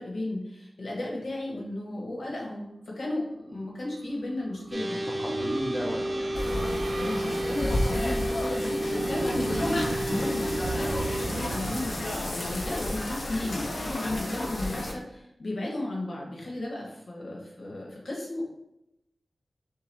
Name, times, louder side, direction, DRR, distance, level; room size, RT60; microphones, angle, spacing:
voice 1, 0.0-5.0 7.0-18.4, left 1 dB, 75° left, -2 dB, 1.2 m, -34 dB
sound 1, 3.9-13.4, right 3 dB, 85° right, 0.4 m, -37 dB
sound 2, 4.7-11.3, equal, 35° right, 0.6 m, -31 dB
voice 2, 4.9-6.3, equal, 15° left, -1 dB, 0.7 m, -35 dB
sound 3, 6.3-14.9, left 1 dB, 60° left, 0.7 m, -32 dB
5.6 x 2.3 x 3.4 m, 0.85 s
wide cardioid pair, 85°, 0 cm